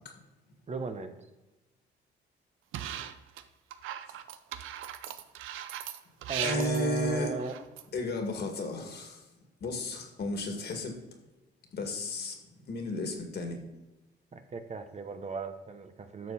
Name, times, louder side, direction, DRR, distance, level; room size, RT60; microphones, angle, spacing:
voice 1, 0.7-1.1 6.3-7.5 14.3-16.3, right 3 dB, 35° right, 7 dB, 1.0 m, -36 dB
sound 1, 2.7-3.4 3.7-8.0, right 11 dB, 85° right, 0.6 m, -38 dB
voice 2, 6.4-7.4 7.9-9.3 9.6-11.0 11.7-12.4 12.7-13.6, left 1 dB, 55° left, 4 dB, 2.4 m, -33 dB
11.5 x 6.8 x 4.3 m, 1.1 s
cardioid pair, 90°, 20 cm